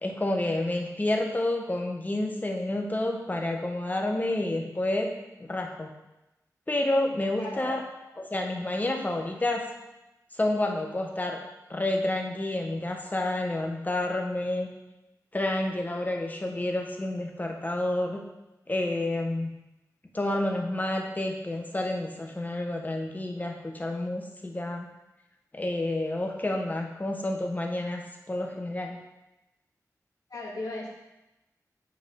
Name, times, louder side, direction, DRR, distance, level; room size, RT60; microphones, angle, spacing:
voice 1, 0.0-5.1 5.5-5.9 6.7-7.8 8.2-9.7 10.4-11.4 11.7-14.7 15.3-18.2 18.7-19.5 20.1-24.9 25.5-28.0 28.3-29.0, left 1 dB, 25° left, 2 dB, 1.1 m, -29 dB
voice 2, 7.4-7.7 30.3-30.9, left 2 dB, 65° left, -5 dB, 2.0 m, -36 dB
8.0 x 4.8 x 3.8 m, 0.97 s
wide cardioid pair, 75°, 7 cm